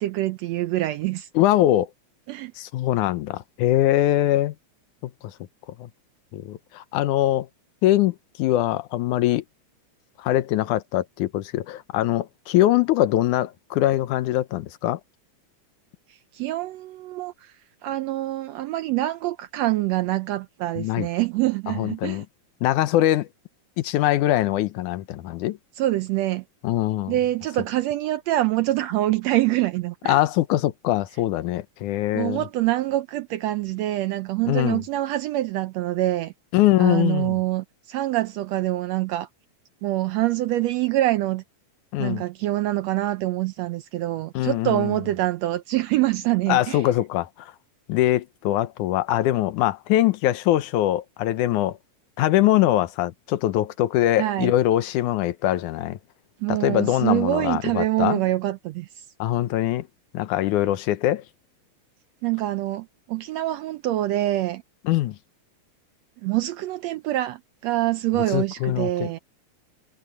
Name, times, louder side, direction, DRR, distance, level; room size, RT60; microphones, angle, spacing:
voice 1, 0.0-1.3 2.3-2.5 16.3-17.5 17.8-22.2 25.8-26.4 27.1-30.2 32.1-36.3 36.8-39.3 39.8-41.4 42.0-46.8 54.2-54.5 56.4-58.9 62.2-64.6 66.2-69.2, right 15 dB, 75° right, 1.6 m, -25 dB
voice 2, 1.4-1.9 2.6-4.5 5.2-5.3 5.8-5.9 6.3-7.5 7.8-9.4 10.2-15.0 20.8-21.1 21.7-22.3 22.6-23.3 23.8-25.6 26.6-27.2 30.1-32.5 34.5-34.8 36.5-37.4 41.9-42.2 44.3-45.0 46.5-47.5 47.9-51.8 52.2-56.0 56.5-58.2 59.2-59.9 60.1-61.2 64.9-65.2 68.2-69.2, left 14 dB, 80° left, 2.3 m, -22 dB
omnidirectional pair, 3.5 m